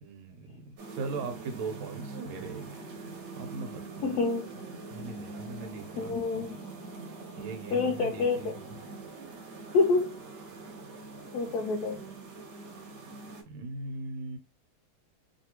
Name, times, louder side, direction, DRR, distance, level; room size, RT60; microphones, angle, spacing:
voice 1, 0.0-2.7 3.0-4.2 4.9-6.5 7.4-8.8 13.5-14.4, right 4 dB, 90° right, 1.7 m, -40 dB
sound 1, 0.8-13.4, right 3 dB, 60° right, 1.5 m, -43 dB
voice 2, 4.0-4.5 6.0-6.6 7.7-8.5 9.7-10.2 11.3-12.0, left 4 dB, 75° left, 0.9 m, -27 dB
3.2 x 2.8 x 2.8 m
omnidirectional pair, 2.2 m